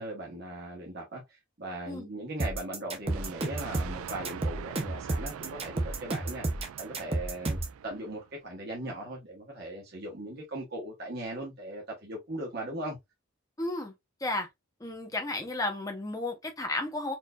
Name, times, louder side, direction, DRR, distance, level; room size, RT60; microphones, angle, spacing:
voice 1, 0.0-6.4 6.8-7.6 7.8-13.0, right 1 dB, 50° right, 1.0 m, -39 dB
sound 1, 2.4-7.8, right 2 dB, 25° right, 0.7 m, -31 dB
Thunder, 3.0-8.4, right 7 dB, 85° right, 0.3 m, -43 dB
voice 2, 13.6-13.9 14.2-14.5 14.8-17.2, left 2 dB, 15° left, 0.8 m, -33 dB
4.4 x 2.6 x 2.2 m
head